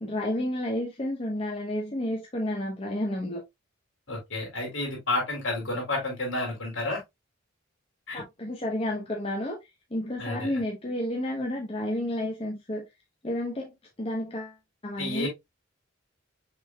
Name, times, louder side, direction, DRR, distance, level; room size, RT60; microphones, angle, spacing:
voice 1, 0.0-3.4 8.1-9.6 9.9-12.9 13.2-13.7 14.0-14.6 14.8-15.3, left 1 dB, 25° left, 0.8 m, -31 dB
voice 2, 4.1-7.0 8.1-8.2 10.2-10.5 15.0-15.3, left 2 dB, 65° left, 2.8 m, -30 dB
5.9 x 3.6 x 2.2 m
head